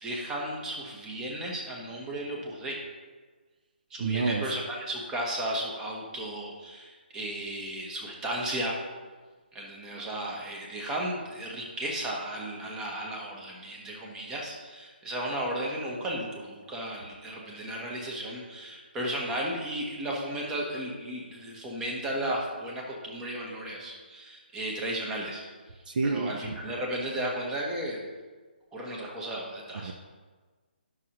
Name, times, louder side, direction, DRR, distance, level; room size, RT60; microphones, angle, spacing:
voice 1, 0.0-2.8 3.9-8.7 9.5-25.5 26.0-28.0 28.7-29.9, right 1 dB, 10° right, -2 dB, 0.9 m, -34 dB
voice 2, 4.0-4.6 25.9-26.3 29.8-29.9, right 4 dB, 50° right, 5 dB, 0.5 m, -28 dB
10.5 x 6.3 x 2.9 m, 1.4 s
hypercardioid pair, 170°, 6 cm